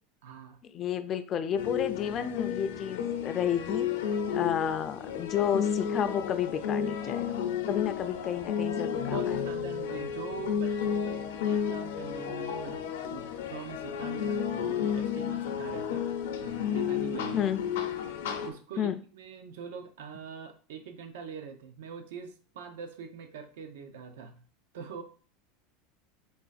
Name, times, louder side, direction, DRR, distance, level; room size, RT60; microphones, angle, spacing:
voice 1, 0.2-0.6 4.3-4.5 7.1-7.7 8.8-12.8 13.1-17.5 18.4-24.4 24.7-25.0, right 6 dB, 90° right, 6 dB, 0.7 m, -43 dB
voice 2, 0.7-3.9 4.3-7.2 7.7-9.4 17.3-17.6 18.8-19.0, left 9 dB, 25° left, 10 dB, 0.3 m, -31 dB
sound 1, 1.6-18.5, left 8 dB, 80° left, 0.5 m, -32 dB
3.8 x 2.4 x 4.1 m, 0.39 s
supercardioid pair, 175°, 0 cm